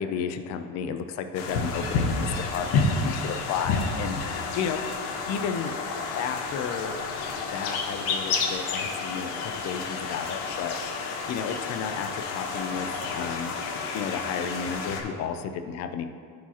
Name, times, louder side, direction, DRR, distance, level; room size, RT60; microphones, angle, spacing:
voice 1, 0.0-4.8 5.3-5.7 6.1-7.1 7.5-12.9 13.1-13.6 13.9-16.1, left 7 dB, 40° left, 7 dB, 0.4 m, -32 dB
sound 1, 1.3-15.0, left 4 dB, 65° left, 1.1 m, -30 dB
14.0 x 4.7 x 2.9 m, 2.2 s
cardioid pair, 150°, 42 cm